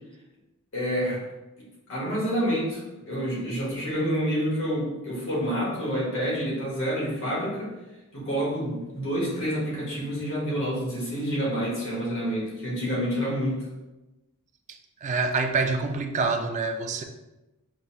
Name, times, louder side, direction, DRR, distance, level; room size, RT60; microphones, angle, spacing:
voice 1, 0.7-1.2 1.9-7.7 8.1-13.7, equal, 65° left, 1.4 m, -28 dB
voice 2, 14.7-17.0, right 4 dB, 35° right, 0.3 m, -27 dB
5.1 x 2.9 x 2.2 m
head